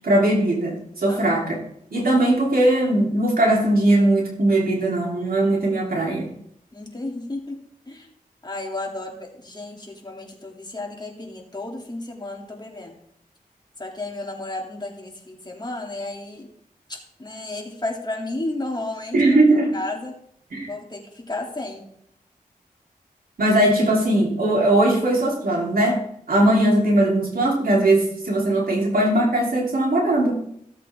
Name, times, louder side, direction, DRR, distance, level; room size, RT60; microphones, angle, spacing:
voice 1, 0.0-1.6 1.9-6.3 19.1-19.7 20.5-20.7 23.4-26.0 26.3-30.3, right 1 dB, 80° right, -2 dB, 3.2 m, -19 dB
voice 2, 1.1-1.4 6.7-7.6 7.9-8.1 8.4-12.9 13.8-16.5 16.9-19.4 19.7-20.1 20.7-21.8, left 2 dB, 30° left, 0 dB, 2.7 m, -33 dB
16.0 x 8.0 x 3.6 m, 0.69 s
wide cardioid pair, 60°, 15 cm